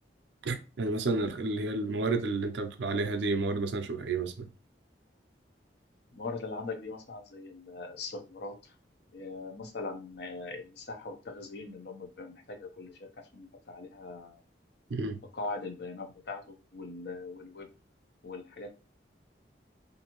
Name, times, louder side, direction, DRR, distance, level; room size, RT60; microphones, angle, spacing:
voice 1, 0.4-4.5 14.9-15.2, right 3 dB, 70° right, 0.4 m, -31 dB
voice 2, 6.1-8.5 9.1-14.4 15.3-17.7 18.2-18.7, left 3 dB, 65° left, 0.6 m, -41 dB
2.6 x 2.6 x 2.9 m
head